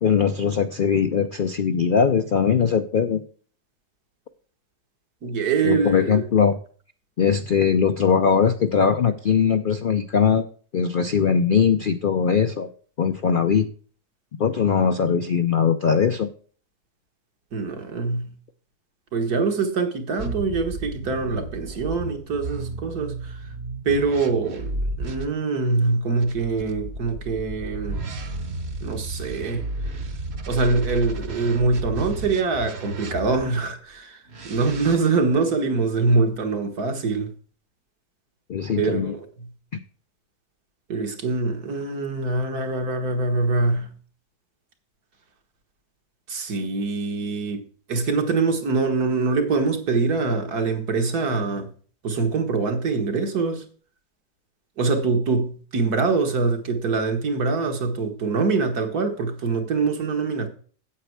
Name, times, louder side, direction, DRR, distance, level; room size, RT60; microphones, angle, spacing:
voice 1, 0.0-3.2 5.6-6.6 7.2-10.5 10.7-12.7 13.0-13.7 14.4-16.3 38.5-39.1 39.7-39.8, left 6 dB, 65° left, 0.5 m, -20 dB
voice 2, 5.2-6.2 17.5-18.3 19.1-23.4 23.9-24.7 25.0-28.1 28.8-29.7 30.5-37.3 38.8-39.5 40.9-43.9 46.3-47.6 47.9-51.7 52.0-53.6 54.8-60.5, right 4 dB, 75° right, 2.1 m, -24 dB
sound 1, 20.2-25.3 26.2-33.6 34.3-35.0, right 2 dB, 45° right, 1.2 m, -33 dB
8.6 x 8.3 x 4.7 m
omnidirectional pair, 1.7 m